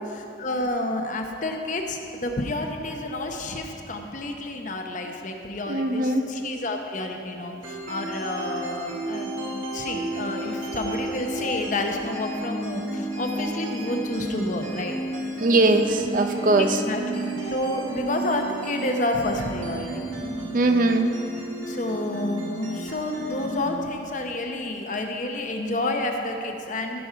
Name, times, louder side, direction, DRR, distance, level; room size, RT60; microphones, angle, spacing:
voice 1, 0.0-15.0 16.5-20.3 21.7-27.0, left 2 dB, 40° left, 3 dB, 0.8 m, -30 dB
voice 2, 5.7-6.2 15.4-16.8 20.5-21.1, right 2 dB, 45° right, 6 dB, 0.5 m, -20 dB
sound 1, 7.6-23.6, right 1 dB, 85° right, 1.8 m, -32 dB
15.0 x 5.4 x 5.7 m, 2.7 s
head